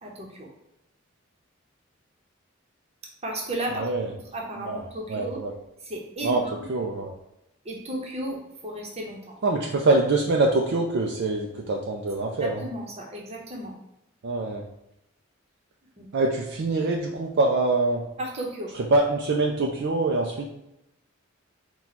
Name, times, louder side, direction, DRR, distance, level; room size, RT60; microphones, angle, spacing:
voice 1, 0.0-0.5 3.2-3.9 4.3-5.4 5.9-6.5 7.6-9.4 12.4-13.7 16.0-16.1 18.2-18.7, right 1 dB, 30° right, 0 dB, 0.9 m, -34 dB
voice 2, 3.7-4.1 4.6-5.5 6.2-6.4 6.7-7.1 9.4-12.7 14.2-14.6 16.1-18.1 18.7-20.5, right 2 dB, 60° right, 0 dB, 0.4 m, -24 dB
4.4 x 2.3 x 4.0 m, 0.86 s
head